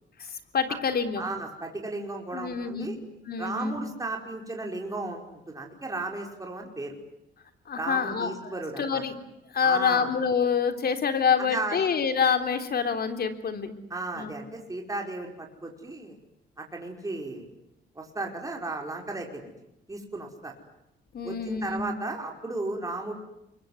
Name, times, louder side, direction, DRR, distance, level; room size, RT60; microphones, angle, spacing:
voice 1, 0.2-1.2 2.3-3.0 3.3-3.8 7.7-9.1 9.5-13.7 14.1-14.3 21.1-21.9, left 6 dB, 50° left, 8 dB, 3.5 m, -27 dB
voice 2, 1.2-2.9 3.4-6.9 7.7-9.0 9.6-10.1 11.4-11.8 13.9-16.2 16.6-17.5 17.9-19.5 19.9-20.5 21.2-23.1, right 2 dB, 15° right, 1 dB, 5.2 m, -35 dB
26.5 x 23.0 x 9.5 m, 0.84 s
cardioid pair, 90°, 20 cm